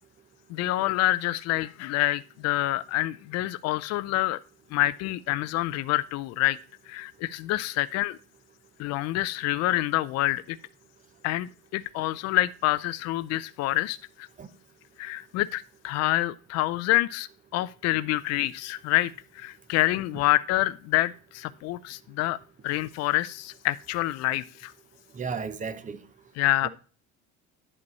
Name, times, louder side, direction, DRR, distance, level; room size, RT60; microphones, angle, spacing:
voice 1, 0.5-4.4 4.7-6.6 6.9-8.2 8.8-10.6 11.2-14.3 15.0-22.4 22.6-24.7 26.4-26.7, left 16 dB, 50° left, 0.4 m, -27 dB
voice 2, 25.2-26.0 26.6-26.7, right 5 dB, 25° right, 0.7 m, -33 dB
11.0 x 5.3 x 4.1 m
cardioid pair, 135°, 32 cm